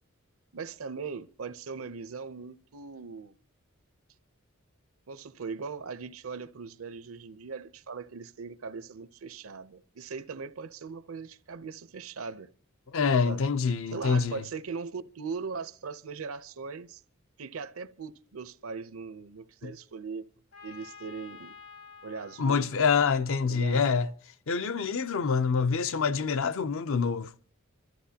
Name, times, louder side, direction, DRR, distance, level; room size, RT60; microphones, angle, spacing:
voice 1, 0.5-3.3 5.1-12.5 13.2-13.5 13.9-17.0 17.4-20.3 20.6-21.6 22.0-22.8 23.4-23.9, right 5 dB, 75° right, 0.7 m, -39 dB
voice 2, 12.9-14.4 19.6-19.7 22.4-24.1 24.5-27.3, left 5 dB, 70° left, 0.6 m, -26 dB
Trumpet, 20.5-24.2, left 5 dB, 85° left, 4.7 m, -51 dB
26.0 x 13.5 x 2.8 m
head